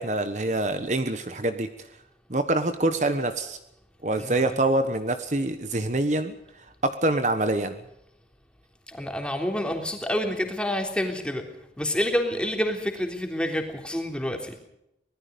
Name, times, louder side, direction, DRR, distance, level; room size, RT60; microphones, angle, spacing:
voice 1, 0.0-1.7 2.3-3.6 4.0-6.3 6.8-7.8, right 2 dB, 40° right, 9 dB, 1.3 m, -25 dB
voice 2, 4.2-4.6 8.9-11.5 11.8-14.6, equal, 5° left, 3 dB, 3.5 m, -28 dB
25.0 x 20.0 x 5.3 m, 0.82 s
head